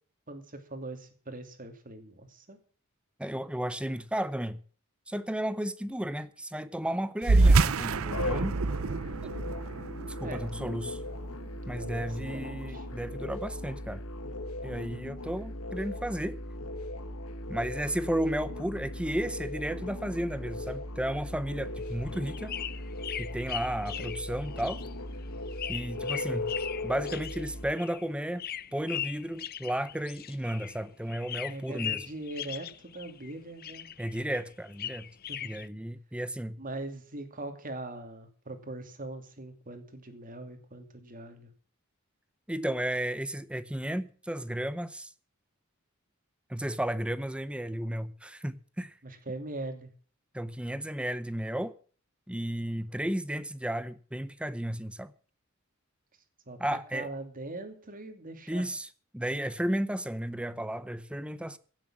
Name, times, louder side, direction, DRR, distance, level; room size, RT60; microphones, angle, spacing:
voice 1, 0.3-2.6 10.2-11.1 11.6-12.9 26.3-26.5 31.5-33.9 35.3-35.5 36.6-41.5 49.0-49.9 56.5-58.7, right 2 dB, 40° right, 2.6 m, -42 dB
voice 2, 3.2-4.6 5.1-8.5 9.2-9.3 10.2-11.0 11.7-14.0 14.6-16.4 17.5-22.6 23.2-24.8 25.7-26.5 26.8-32.0 34.0-35.1 35.4-36.6 42.5-45.1 46.5-49.0 50.3-51.7 52.3-55.1 56.6-57.1 58.5-58.9 59.1-61.6, right 1 dB, 5° right, 0.7 m, -33 dB
sound 1, 7.2-12.1, right 3 dB, 75° right, 0.6 m, -26 dB
sound 2, 8.1-27.7, left 1 dB, 80° left, 1.4 m, -38 dB
sound 3, 21.8-30.8 31.1-33.3 33.6-35.7, left 10 dB, 45° left, 0.6 m, -39 dB
16.5 x 7.4 x 7.5 m
head